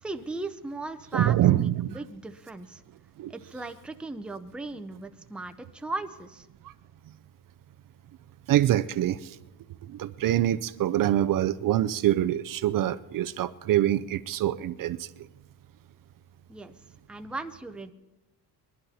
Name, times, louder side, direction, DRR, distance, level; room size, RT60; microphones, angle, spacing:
voice 1, 0.0-2.8 3.3-6.5 16.5-16.8 17.1-17.9, right 2 dB, ahead, 0.6 m, -37 dB
voice 2, 1.1-2.0 3.2-3.3 8.5-9.4 9.8-15.1, right 12 dB, 55° right, 0.5 m, -25 dB
21.0 x 12.0 x 4.2 m
cardioid pair, 135°, 41 cm